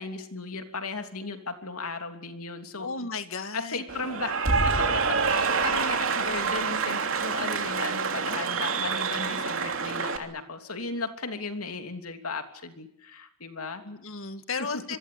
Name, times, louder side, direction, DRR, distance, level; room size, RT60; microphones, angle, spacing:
voice 1, 0.0-2.9 3.5-4.4 4.8-13.8 14.6-14.8, left 3 dB, 90° left, 6 dB, 3.1 m, -36 dB
voice 2, 2.8-3.8 13.9-15.0, left 4 dB, 65° left, 9 dB, 2.1 m, -34 dB
Cheering / Applause, 3.9-10.2, right 5 dB, 65° right, 3.1 m, -27 dB
26.5 x 22.5 x 8.7 m, 0.73 s
head